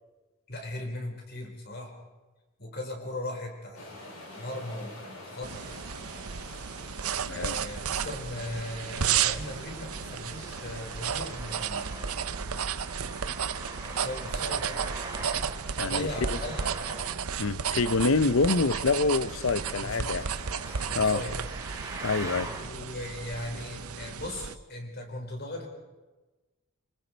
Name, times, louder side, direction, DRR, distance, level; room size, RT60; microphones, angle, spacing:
voice 1, 0.5-1.9 2.6-5.8 6.4-6.6 7.3-12.2 13.8-14.8 15.8-16.6 19.8-20.5 20.9-21.4 22.5-25.7, left 1 dB, 45° left, 4.6 m, -38 dB
sound 1, 3.7-11.7, left 1 dB, 90° left, 6.3 m, -47 dB
sound 2, 5.4-24.6, right 7 dB, 90° right, 0.8 m, -33 dB
voice 2, 7.2-7.6 15.8-16.1 17.4-20.2 20.9-21.2 22.0-22.5, left 4 dB, 70° left, 0.7 m, -26 dB
Traffic noise roadway noise, 8.3-22.7, right 3 dB, 15° right, 3.2 m, -43 dB
26.0 x 26.0 x 4.6 m
head